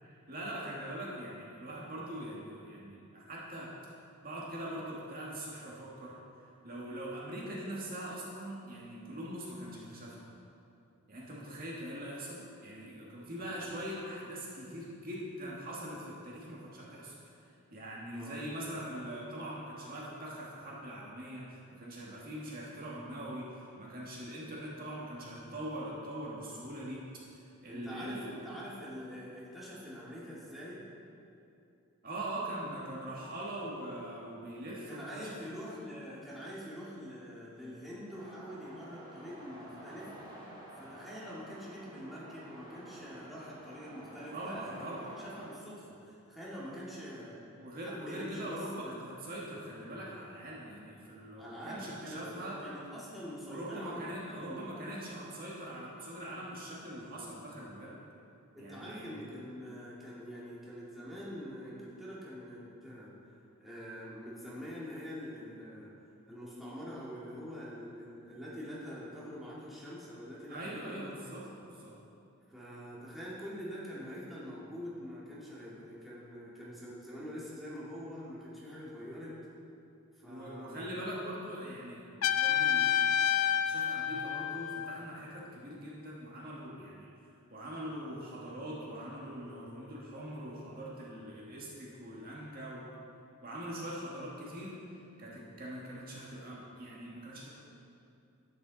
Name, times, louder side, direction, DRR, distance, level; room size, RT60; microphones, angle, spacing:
voice 1, 0.0-3.7 4.2-6.2 6.6-10.3 11.1-17.2 17.7-27.0 27.3-28.3 32.0-35.4 44.3-45.1 47.6-52.6 53.5-58.0 58.6-59.1 70.5-71.9 80.3-87.1 87.5-92.8 93.4-94.8 95.2-97.5, right 1 dB, 45° right, -5 dB, 1.8 m, -42 dB
voice 2, 13.4-13.7 18.1-18.6 27.7-31.0 34.9-40.1 40.8-47.4 47.8-49.0 51.4-54.7 58.5-63.2 63.6-65.9 66.3-71.4 72.5-79.4 80.1-80.9, equal, ahead, -9 dB, 2.1 m, -45 dB
sound 1, 38.1-45.5, right 1 dB, 20° right, 2.1 m, -51 dB
Trumpet, 82.2-85.1, left 9 dB, 75° left, 0.5 m, -29 dB
11.0 x 9.2 x 4.0 m, 2.7 s
head